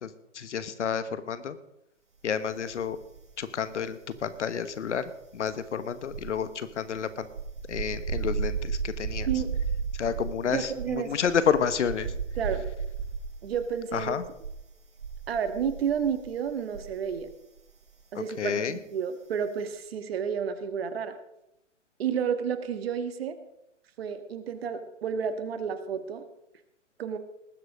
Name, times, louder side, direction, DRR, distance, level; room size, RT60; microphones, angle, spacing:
voice 1, 0.0-1.6 2.2-3.0 3.4-7.3 7.7-9.3 10.0-12.1 13.9-14.2 18.4-18.8, left 7 dB, 70° left, 13 dB, 1.3 m, -30 dB
sound 1, 2.7-3.5 3.8-17.3 17.6-17.8, right 5 dB, 75° right, 2.3 m, -35 dB
voice 2, 10.5-11.2 12.4-12.7 13.4-14.2 15.3-17.3 18.1-21.1 22.0-23.4 24.0-26.2 27.0-27.2, right 7 dB, 50° right, 10 dB, 1.6 m, -31 dB
19.5 x 7.9 x 4.9 m, 0.84 s
hypercardioid pair, 140°, 37 cm